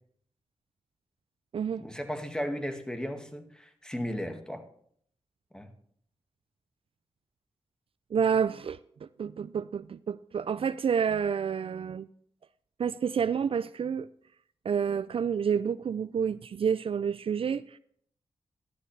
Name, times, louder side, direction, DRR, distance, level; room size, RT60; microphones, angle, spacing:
voice 1, 1.8-4.6 5.5-5.7, equal, 5° left, 1.8 m, -35 dB
voice 2, 8.1-12.1 12.8-14.1 14.6-17.8, right 7 dB, 60° right, 0.4 m, -29 dB
12.5 x 11.5 x 3.3 m
cardioid pair, 55°, 11 cm